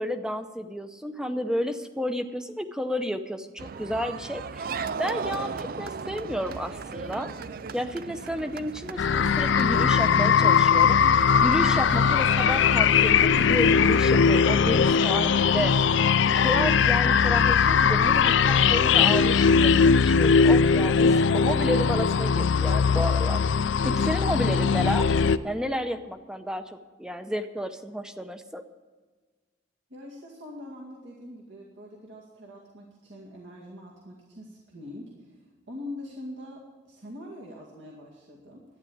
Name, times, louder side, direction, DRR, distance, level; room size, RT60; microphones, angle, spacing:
voice 1, 0.0-7.3 7.7-16.1 16.4-28.6, equal, 5° right, 9 dB, 0.6 m, -32 dB
sound 1, 3.6-12.7, right 5 dB, 50° right, 0.4 m, -37 dB
sound 2, 9.0-25.4, left 6 dB, 70° left, 0.4 m, -20 dB
voice 2, 29.9-38.6, left 1 dB, 65° right, -3 dB, 2.1 m, -43 dB
12.0 x 9.7 x 8.7 m, 1.4 s
head